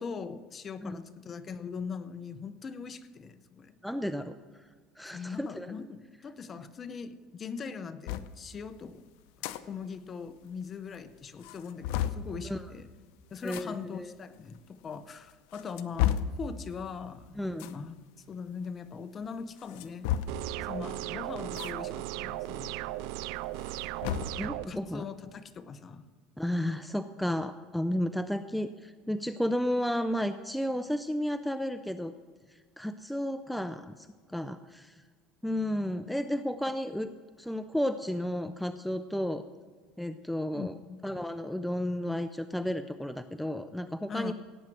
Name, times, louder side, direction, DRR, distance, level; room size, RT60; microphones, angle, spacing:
voice 1, 0.0-3.7 5.1-9.0 9.4-12.9 13.3-17.4 17.7-17.9 18.3-20.1 20.7-22.8 24.4-26.1 36.6-36.8 40.5-41.1 44.1-44.3, left 5 dB, 30° left, 12 dB, 0.8 m, -41 dB
voice 2, 3.8-4.4 5.0-5.8 12.4-12.7 13.4-14.1 17.4-17.7 24.4-25.0 26.4-32.1 32.8-34.1 34.3-35.0 35.4-37.1 37.4-39.4 40.0-40.7 41.0-44.3, equal, ahead, 10 dB, 0.5 m, -32 dB
sound 1, 8.1-8.3 9.2-9.6 9.9-10.0 10.3-10.4 10.9-11.0 11.4-12.3 13.4-13.7 14.5-14.6 15.3-16.4 17.5-17.8 19.6-20.5 21.5-21.7 22.1-22.2 23.5-24.4, left 11 dB, 75° left, 0.7 m, -32 dB
sound 2, 20.3-24.7, right 15 dB, 70° right, 0.4 m, -36 dB
17.0 x 9.0 x 6.1 m, 1.6 s
supercardioid pair, 130°, 0 cm